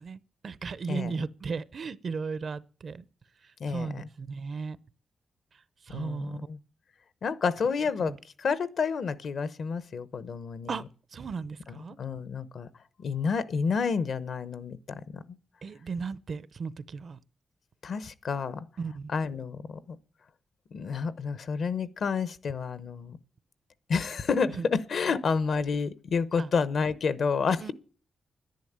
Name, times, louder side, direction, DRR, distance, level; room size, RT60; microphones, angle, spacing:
voice 1, 0.0-3.1 3.4-4.8 5.8-6.4 8.0-8.2 10.7-10.8 11.1-12.0 15.6-17.2 18.8-19.1 24.5-24.7 26.4-26.5 27.6-27.7, right 5 dB, 50° right, 0.6 m, -36 dB
voice 2, 3.6-4.1 5.9-6.6 7.2-10.8 11.7-12.7 13.0-15.2 17.8-18.7 19.1-20.0 20.7-23.2 23.9-27.7, left 5 dB, 60° left, 0.8 m, -30 dB
11.0 x 10.5 x 8.7 m
wide cardioid pair, 140°, 0 cm